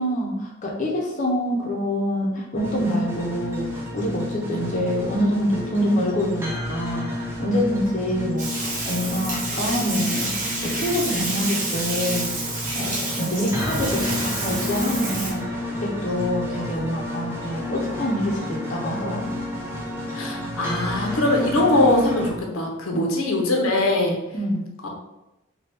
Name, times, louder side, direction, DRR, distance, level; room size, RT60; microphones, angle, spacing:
voice 1, 0.0-19.3 22.9-23.1 24.3-24.6, equal, 35° left, -3 dB, 0.6 m, -26 dB
sound 1, 2.6-22.3, left 1 dB, 10° right, 0.5 m, -31 dB
Bathtub (filling or washing), 8.4-15.3, right 2 dB, 35° right, 0.9 m, -29 dB
voice 2, 20.1-24.2 24.8-24.9, left 1 dB, 75° left, 1 dB, 0.7 m, -21 dB
3.3 x 2.3 x 4.2 m, 0.95 s
head